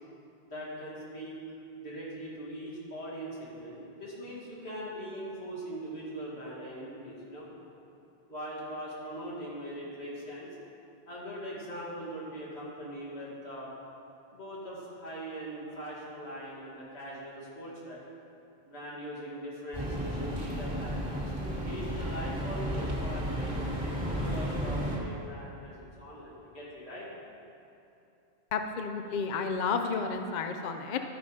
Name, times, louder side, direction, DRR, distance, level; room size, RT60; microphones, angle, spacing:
voice 1, 0.4-1.4 1.7-7.5 8.3-10.5 11.1-13.7 14.3-18.0 18.6-27.1, equal, 85° left, -6 dB, 2.4 m, -41 dB
sound 1, 19.7-25.0, equal, 45° right, 1.7 m, -33 dB
voice 2, 28.5-31.0, left 5 dB, 55° left, 6 dB, 0.6 m, -31 dB
12.0 x 4.9 x 5.5 m, 2.8 s
omnidirectional pair, 1.1 m